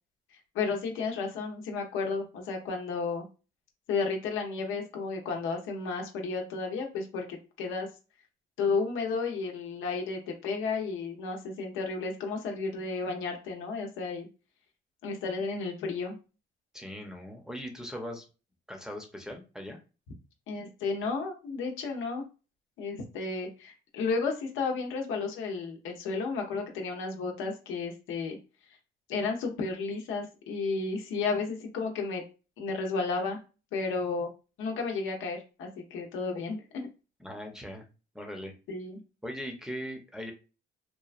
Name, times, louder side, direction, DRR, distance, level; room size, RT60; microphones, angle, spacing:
voice 1, 0.5-3.2 3.9-7.9 8.6-14.3 15.0-16.2 20.5-22.2 22.8-28.4 29.1-32.2 32.6-33.4 33.7-34.3 34.6-36.9 38.7-39.0, left 4 dB, 90° left, 2 dB, 0.7 m, -32 dB
voice 2, 16.7-18.3 18.7-19.8 37.2-37.8 38.1-38.5 39.2-40.3, equal, 5° right, 1 dB, 0.7 m, -39 dB
3.0 x 2.2 x 2.4 m, 0.32 s
cardioid pair, 90°, 20 cm